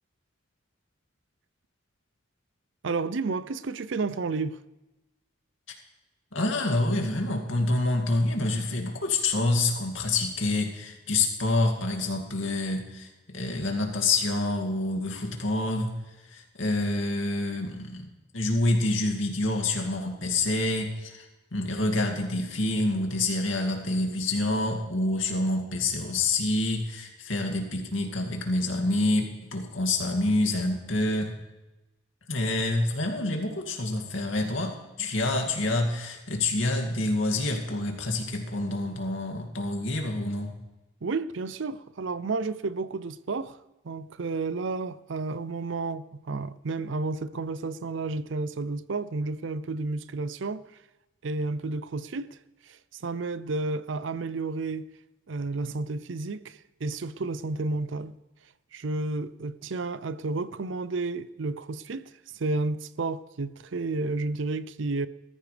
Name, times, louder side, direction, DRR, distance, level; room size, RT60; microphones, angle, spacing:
voice 1, 2.8-4.6 41.0-43.6 43.8-50.7 51.2-52.4 52.6-54.9 55.3-58.1 58.7-65.1, right 3 dB, 70° right, 0.5 m, -31 dB
voice 2, 6.3-16.0 16.3-31.4 32.3-40.6, left 2 dB, 75° left, 2.4 m, -27 dB
19.0 x 14.0 x 3.4 m
head